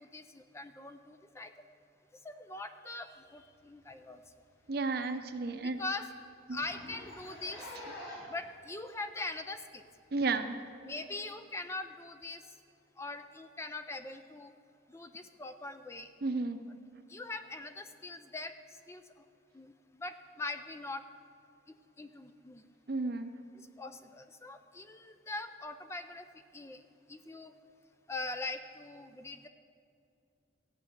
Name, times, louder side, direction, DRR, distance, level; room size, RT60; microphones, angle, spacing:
voice 1, 0.0-1.5 2.2-4.2 5.6-6.1 6.5-7.7 8.3-9.8 10.8-12.4 13.0-14.5 14.9-16.1 17.1-18.5 18.9-19.0 19.5-21.0 21.7-22.7 23.8-26.2 26.5-26.8 27.1-27.5 28.1-29.5, left 2 dB, 15° left, 9 dB, 0.4 m, -42 dB
Zipper (clothing), 3.8-4.0 4.4-4.5 4.8-4.9 5.3-5.4 5.6-5.8 6.5-8.4 9.2-9.3 10.3-10.4, left 1 dB, 85° left, 3.0 m, -47 dB
voice 2, 4.7-5.8 6.5-6.6 10.1-10.6 16.2-16.6 22.9-23.3, right 3 dB, 55° right, 8 dB, 0.7 m, -32 dB
14.5 x 5.7 x 9.1 m, 2.5 s
head